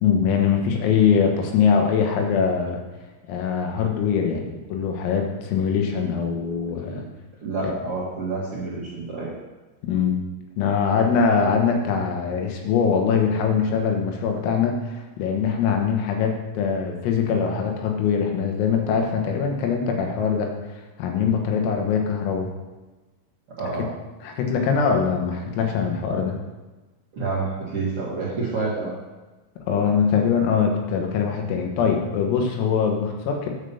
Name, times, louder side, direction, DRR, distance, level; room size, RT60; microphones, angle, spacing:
voice 1, 0.0-2.8 3.3-7.1 7.6-7.7 9.8-10.2 10.6-20.5 21.0-22.5 23.8-23.9 24.2-26.4 29.7-33.5, left 6 dB, 85° left, 3 dB, 4.0 m, -22 dB
voice 2, 7.4-9.3 23.6-23.9 27.1-28.9, right 3 dB, 60° right, -8 dB, 1.4 m, -28 dB
9.9 x 5.6 x 7.1 m, 1.2 s
omnidirectional pair, 5.9 m